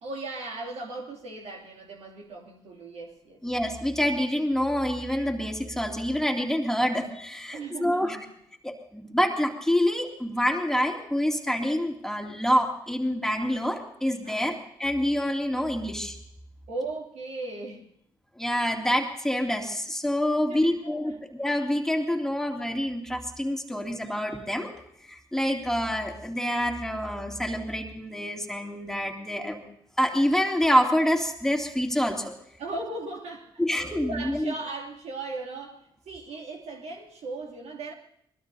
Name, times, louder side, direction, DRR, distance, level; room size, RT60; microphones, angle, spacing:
voice 1, 0.0-3.4 7.5-8.2 14.2-14.6 16.7-17.9 20.5-21.1 32.6-37.9, right 3 dB, 60° right, -2 dB, 2.8 m, -37 dB
voice 2, 3.4-8.2 8.6-14.5 14.8-16.2 18.4-24.7 25.1-29.6 30.0-32.4 33.6-34.5, equal, 5° left, 2 dB, 2.6 m, -27 dB
24.0 x 20.0 x 2.8 m, 0.74 s
hypercardioid pair, 45°, 12 cm